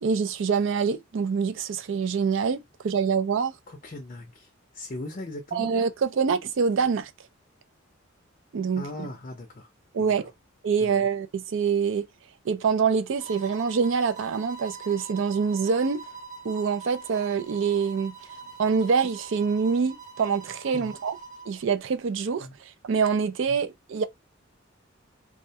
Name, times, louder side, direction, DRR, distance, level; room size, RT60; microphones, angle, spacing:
voice 1, 0.0-3.5 5.5-7.1 8.5-9.1 9.9-10.3 10.6-12.1 12.5-16.0 16.4-18.1 18.6-21.2 21.5-22.5 22.8-24.0, right 5 dB, 65° right, 0.4 m, -25 dB
voice 2, 3.7-5.7 8.7-9.7 10.0-10.1 10.8-11.1 20.7-21.0 22.4-22.5 23.5-23.6, left 2 dB, 40° left, 0.5 m, -39 dB
sound 1, 13.2-21.6, right 5 dB, 40° right, 0.9 m, -43 dB
2.3 x 2.1 x 2.7 m
head